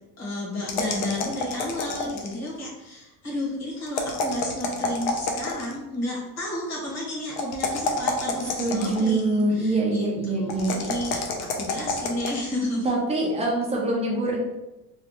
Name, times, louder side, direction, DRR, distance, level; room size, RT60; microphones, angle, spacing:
voice 1, 0.2-12.9, left 1 dB, 35° left, -5 dB, 1.3 m, -32 dB
sound 1, 0.7-2.5 3.9-5.8 7.4-9.2 10.5-12.4, left 3 dB, 55° left, 0.6 m, -28 dB
voice 2, 8.6-10.9 12.8-14.4, right 2 dB, 15° right, -3 dB, 0.4 m, -24 dB
3.3 x 2.3 x 2.8 m, 1.0 s
cardioid pair, 150°, 45 cm